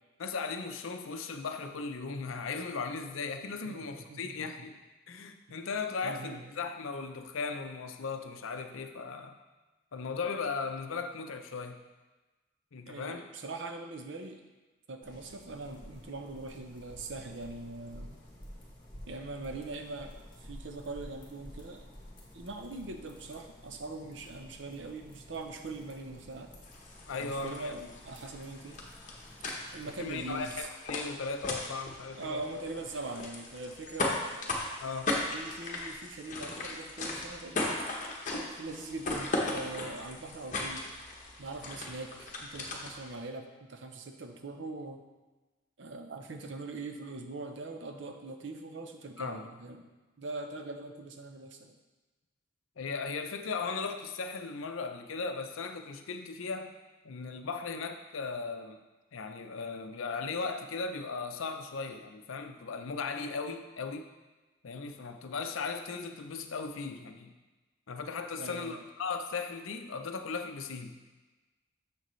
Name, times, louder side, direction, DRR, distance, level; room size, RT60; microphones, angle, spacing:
voice 1, 0.2-4.8 5.1-9.3 9.9-11.8 12.7-13.2 27.1-27.7 29.8-32.4 34.8-35.2 49.2-49.4 52.8-56.7 57.0-58.8 59.1-64.1 64.6-67.3 67.9-71.0, left 4 dB, 75° left, 6 dB, 0.6 m, -37 dB
voice 2, 3.6-4.7 5.5-5.6 6.0-6.5 12.9-14.4 14.9-18.2 19.1-21.9 22.3-26.5 27.2-28.8 29.7-30.7 32.2-34.6 35.3-37.8 38.3-40.8 41.4-45.0 45.8-49.9 50.2-51.7 68.4-68.8, right 2 dB, 60° right, 5 dB, 0.7 m, -42 dB
sound 1, 15.0-30.6, equal, 20° left, 1.2 m, -51 dB
sound 2, 26.6-43.1, left 2 dB, 35° left, 0.9 m, -38 dB
7.1 x 6.5 x 3.1 m, 1.2 s
head